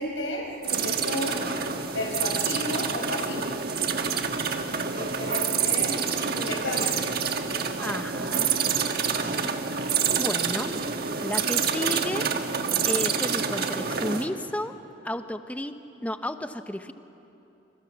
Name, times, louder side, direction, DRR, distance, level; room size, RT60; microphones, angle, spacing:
voice 1, 0.0-1.4 1.9-3.7 4.9-7.0, left 1 dB, 85° left, -1 dB, 5.5 m, -33 dB
sound 1, 0.6-14.3, right 6 dB, 50° right, 1.5 m, -27 dB
voice 2, 7.8-8.6 9.2-9.5 10.2-10.8 11.2-12.3 12.5-14.7 15.0-15.7 16.0-16.9, left 1 dB, 10° left, 8 dB, 0.9 m, -32 dB
29.0 x 27.5 x 7.2 m, 2.9 s
head